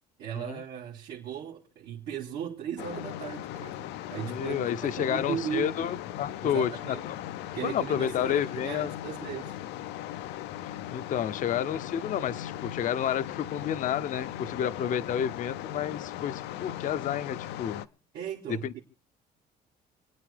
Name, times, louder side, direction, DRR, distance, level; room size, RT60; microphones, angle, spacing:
voice 1, 0.2-3.8 4.1-5.9 6.4-7.0 7.5-9.6 18.1-18.8, right 9 dB, 75° right, 1.9 m, -37 dB
sound 1, 2.8-17.9, left 12 dB, 90° left, 0.6 m, -38 dB
voice 2, 4.2-7.2 7.6-8.9 10.6-17.8 18.6-18.8, left 9 dB, 50° left, 0.6 m, -30 dB
28.0 x 9.6 x 3.4 m
cardioid pair, 110°, 17 cm